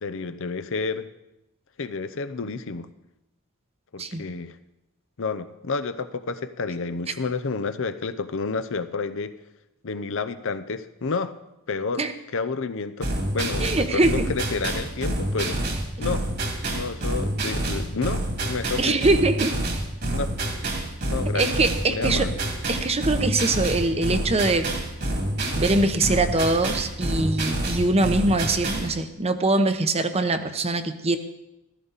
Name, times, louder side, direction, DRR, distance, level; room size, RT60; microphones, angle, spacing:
voice 1, 0.0-1.1 1.8-2.9 3.9-4.6 5.2-9.3 9.8-11.3 11.7-12.1 12.3-15.6 16.0-16.2 16.7-19.1 20.1-20.3 21.1-21.5 21.8-22.3, left 4 dB, 65° left, 11 dB, 0.7 m, -30 dB
sound 1, 13.0-28.9, right 1 dB, 50° right, 2.4 m, -27 dB
voice 2, 13.6-14.3 18.8-19.5 21.3-22.3 22.7-24.7 25.5-31.2, right 2 dB, 30° right, 9 dB, 0.9 m, -23 dB
14.5 x 14.0 x 4.1 m, 0.90 s
head